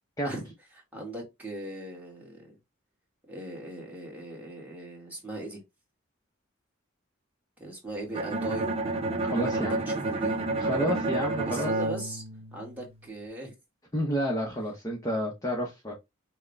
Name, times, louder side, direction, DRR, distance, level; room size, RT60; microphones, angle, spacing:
voice 1, 0.7-2.6 3.3-5.6 7.6-8.7 9.5-10.4 11.4-12.2 12.5-13.5, right 1 dB, 10° right, 1.7 m, -39 dB
Bowed string instrument, 8.1-13.1, right 2 dB, 30° right, 0.7 m, -30 dB
voice 2, 9.3-9.8 10.6-11.7 13.9-15.9, equal, 15° left, 0.9 m, -30 dB
6.2 x 2.3 x 3.2 m
head